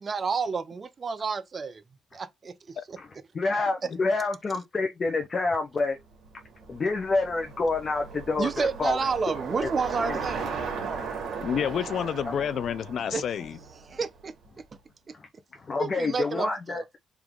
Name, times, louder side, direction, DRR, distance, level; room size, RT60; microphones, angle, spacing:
voice 1, 0.0-1.8 2.1-3.0 3.8-3.9 8.4-11.0 13.1-13.5 13.8-14.3 15.8-16.8, right 5 dB, 40° right, 0.5 m, -30 dB
voice 2, 3.3-6.0 6.7-9.0 10.0-10.2 15.6-17.0, left 3 dB, 35° left, 0.9 m, -27 dB
Bicycle, 6.1-14.4, right 5 dB, 65° right, 1.5 m, -37 dB
voice 3, 11.4-13.6, left 8 dB, 65° left, 0.3 m, -29 dB
3.6 x 2.9 x 3.6 m
cardioid pair, 90°, 0 cm